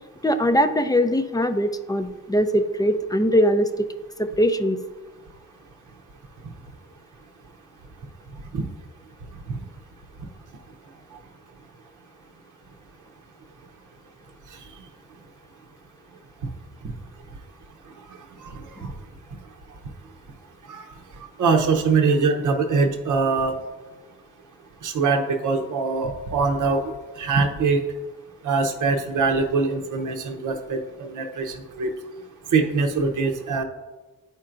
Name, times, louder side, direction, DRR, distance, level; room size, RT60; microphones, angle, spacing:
voice 1, 0.2-3.9 4.2-4.8, equal, 10° left, 8 dB, 0.5 m, -21 dB
voice 2, 18.4-18.9 20.7-20.8 21.4-23.6 24.8-27.8 28.4-31.9 32.5-33.6, right 4 dB, 60° right, 3 dB, 0.7 m, -23 dB
10.5 x 4.4 x 2.5 m, 1.2 s
cardioid pair, 65°, 35 cm